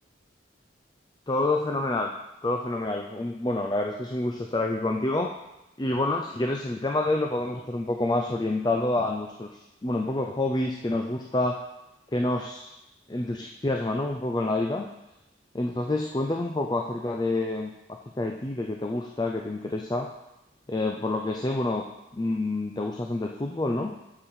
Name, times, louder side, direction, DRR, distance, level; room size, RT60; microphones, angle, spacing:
voice 1, 1.3-2.1 2.4-5.3 5.8-9.5 9.8-11.6 12.1-12.7 13.1-14.8 15.5-20.1 20.7-21.8 22.1-23.9, left 2 dB, 20° left, 2 dB, 0.5 m, -28 dB
7.1 x 6.8 x 5.6 m, 0.93 s
head